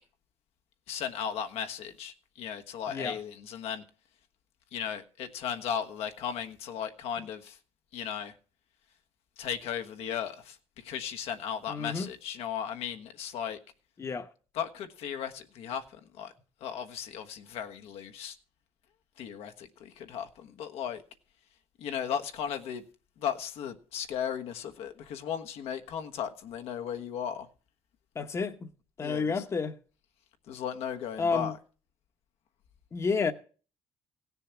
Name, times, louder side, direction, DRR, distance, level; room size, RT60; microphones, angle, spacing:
voice 1, 0.9-3.8 4.7-7.6 7.9-8.3 9.4-13.6 14.5-16.3 16.6-18.4 19.2-21.0 21.8-22.8 23.2-27.5 29.0-29.3 30.5-31.6, left 8 dB, 80° left, 1.2 m, -36 dB
voice 2, 2.9-3.2 11.7-12.1 14.0-14.3 28.1-28.7 29.0-29.8 31.2-31.5 32.9-33.3, left 4 dB, 30° left, 0.9 m, -30 dB
16.5 x 7.0 x 5.9 m
cardioid pair, 130°, 10 cm